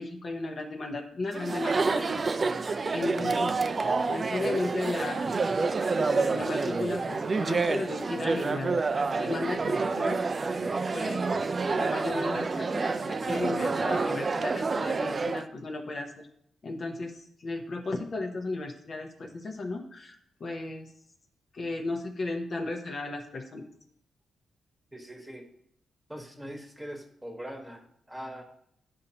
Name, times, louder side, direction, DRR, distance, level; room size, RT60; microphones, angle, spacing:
voice 1, 0.0-3.6 4.1-5.3 5.9-8.8 9.2-10.7 10.9-11.3 11.7-16.3 16.6-20.9 21.5-23.7, left 2 dB, 45° left, 2 dB, 0.7 m, -35 dB
Chatter, 1.3-15.5, right 4 dB, 35° right, 0.4 m, -28 dB
voice 2, 24.9-25.4 26.1-28.4, equal, 5° right, 2 dB, 1.2 m, -42 dB
9.5 x 5.2 x 2.8 m, 0.68 s
cardioid pair, 115°, 0 cm